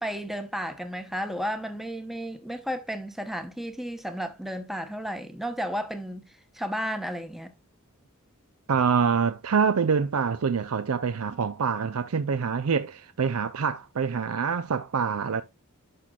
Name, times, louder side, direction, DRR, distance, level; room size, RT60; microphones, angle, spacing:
voice 1, 0.0-6.3 6.5-7.5, equal, ahead, 1.0 m, -33 dB
voice 2, 8.7-15.4, right 6 dB, 75° right, 0.5 m, -25 dB
11.5 x 5.9 x 2.3 m
head